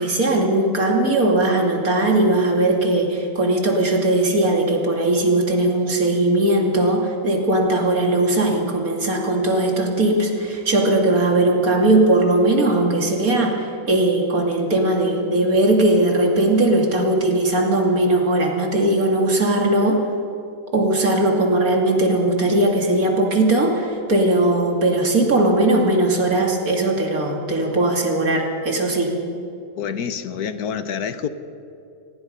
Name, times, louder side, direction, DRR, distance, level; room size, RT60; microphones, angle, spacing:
voice 1, 0.0-20.0 20.7-29.1, right 2 dB, 65° right, 1 dB, 3.0 m, -19 dB
voice 2, 29.8-31.3, left 7 dB, 75° left, 11 dB, 1.4 m, -27 dB
27.0 x 19.5 x 5.4 m, 2.6 s
omnidirectional pair, 1.6 m